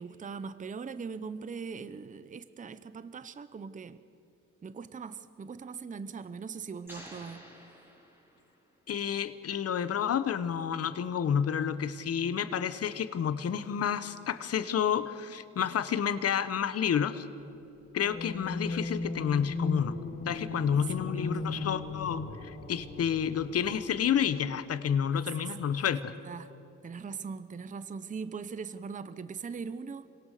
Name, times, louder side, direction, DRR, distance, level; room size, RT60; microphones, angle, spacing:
voice 1, 0.0-4.0 4.6-7.4 21.1-21.4 25.1-25.9 26.2-26.5 26.8-30.1, right 5 dB, 25° right, 14 dB, 0.7 m, -41 dB
sound 1, 6.9-8.7, equal, 5° right, 5.2 m, -50 dB
voice 2, 8.9-17.3 17.9-20.0 20.3-26.1, left 8 dB, 50° left, 12 dB, 1.1 m, -30 dB
sound 2, 18.0-24.0, left 3 dB, 30° left, 2.2 m, -37 dB
26.5 x 17.5 x 6.7 m, 2.7 s
cardioid pair, 90°, 30 cm